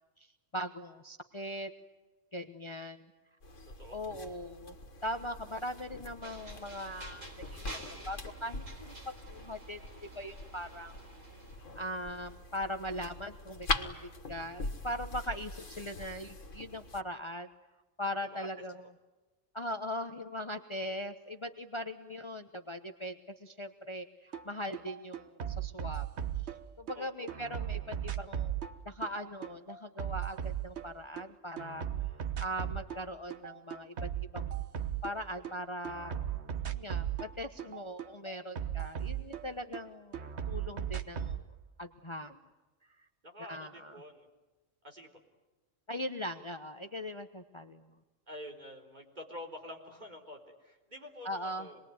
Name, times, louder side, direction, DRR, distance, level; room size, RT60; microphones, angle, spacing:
voice 1, 0.2-1.7 2.3-3.1 3.9-4.7 5.0-7.3 8.0-9.8 10.1-10.9 11.7-17.5 18.0-18.8 19.5-26.1 26.8-28.5 28.8-31.8 32.1-34.6 35.0-36.1 36.6-40.2 40.5-41.4 41.8-42.4 43.5-44.0 45.9-47.8 51.2-51.7, equal, 25° left, 7 dB, 1.1 m, -40 dB
sound 1, 3.4-17.0, left 2 dB, 75° left, 2.2 m, -42 dB
sound 2, 6.2-11.9, right 1 dB, 90° right, 4.8 m, -50 dB
sound 3, 24.3-24.5 24.7-26.9 27.3-31.3 31.6-33.0 33.3-35.5 35.8-39.8 40.1-41.4, right 10 dB, 60° right, 1.5 m, -37 dB
voice 2, 26.9-27.3 43.2-44.3 44.8-45.1 48.3-51.8, left 1 dB, 35° right, 2 dB, 4.3 m, -47 dB
27.0 x 21.5 x 9.4 m, 1.2 s
omnidirectional pair, 1.3 m